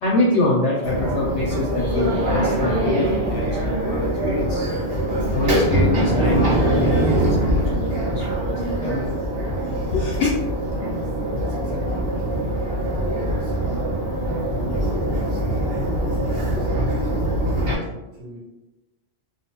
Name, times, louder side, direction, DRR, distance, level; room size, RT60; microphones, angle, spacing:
voice 1, 0.0-4.6 5.3-9.1 9.8-10.3, left 2 dB, 70° left, -5 dB, 0.8 m, -25 dB
sound 1, 0.8-17.8, right 1 dB, 55° right, 0.8 m, -23 dB
voice 2, 11.3-12.6 12.9-14.0 14.4-15.6 16.0-18.4, right 1 dB, 85° right, -6 dB, 1.1 m, -38 dB
2.5 x 2.1 x 2.8 m, 1.0 s
omnidirectional pair, 1.3 m